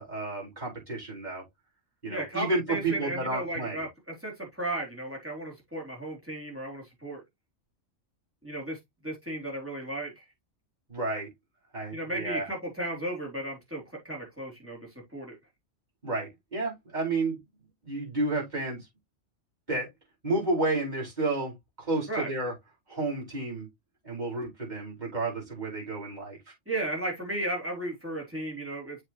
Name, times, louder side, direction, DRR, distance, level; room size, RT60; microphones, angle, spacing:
voice 1, 0.0-1.4 2.0-3.8 10.9-11.3 11.7-12.5 16.0-17.4 17.8-18.9 19.7-19.9 20.2-22.5 22.9-23.7 24.0-26.4, right 2 dB, 35° right, 5.2 m, -31 dB
voice 2, 2.1-7.2 8.4-8.8 9.0-10.2 11.9-15.4 22.1-22.3 26.7-29.0, right 1 dB, 10° right, 3.3 m, -35 dB
7.5 x 5.1 x 3.0 m
omnidirectional pair, 1.3 m